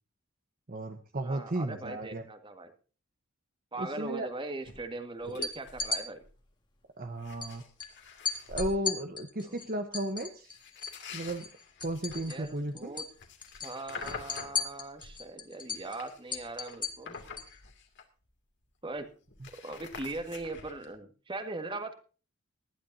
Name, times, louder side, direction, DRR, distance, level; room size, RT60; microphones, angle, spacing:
voice 1, 0.7-2.2 3.8-4.3 7.0-7.6 8.5-10.6 11.1-11.5 11.8-12.9, right 1 dB, 45° right, 6 dB, 1.0 m, -34 dB
voice 2, 1.2-2.7 3.7-6.2 9.4-9.5 12.3-13.0 13.6-17.2 18.8-19.1 19.5-21.9, right 2 dB, 25° right, 7 dB, 1.7 m, -40 dB
sound 1, 4.6-4.8 5.2-6.0 6.2-6.5 7.0-8.8 10.4-15.2 15.6-18.3 18.6-18.7 18.9-20.9, left 4 dB, 60° left, 2.5 m, -46 dB
sound 2, 5.3-6.0 7.4-7.5 7.8-7.9 8.3-11.0 11.3-12.5 12.8-13.1 13.4-17.5, left 4 dB, 20° left, 1.8 m, -36 dB
19.5 x 12.0 x 2.7 m, 0.36 s
head